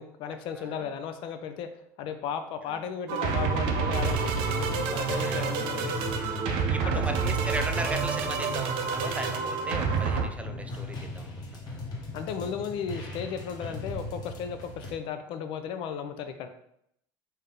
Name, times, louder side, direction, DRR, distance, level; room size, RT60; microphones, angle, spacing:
voice 1, 0.0-1.7 2.0-6.0 6.8-7.0 12.1-16.5, left 7 dB, 60° left, 8 dB, 0.5 m, -35 dB
voice 2, 0.6-0.9 2.7-2.8 5.2-5.5 5.8-11.8 13.6-13.7, right 2 dB, 15° right, 8 dB, 0.3 m, -38 dB
sound 1, 3.1-10.3, right 5 dB, 65° right, 0.5 m, -28 dB
sound 2, 3.9-14.9, left 2 dB, 45° left, 1.1 m, -39 dB
3.6 x 2.7 x 3.7 m, 0.73 s
supercardioid pair, 95°, 10 cm